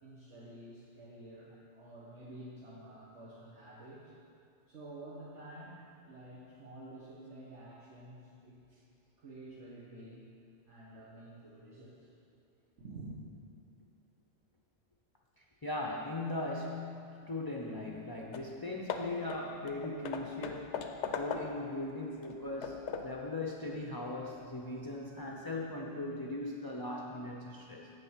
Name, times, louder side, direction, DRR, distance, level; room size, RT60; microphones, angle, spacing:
voice 1, 0.0-4.1 4.7-8.6 9.2-10.3 10.7-12.1 12.8-13.1, right 1 dB, 75° right, -6 dB, 1.5 m, -50 dB
voice 2, 15.4-27.9, left 2 dB, 25° left, -1 dB, 0.5 m, -39 dB
Hammer / Wood, 18.0-18.1 18.3-18.6 18.9-21.8 22.2-23.2, left 6 dB, 75° left, 0.9 m, -40 dB
7.8 x 7.4 x 5.6 m, 2.6 s
omnidirectional pair, 1.2 m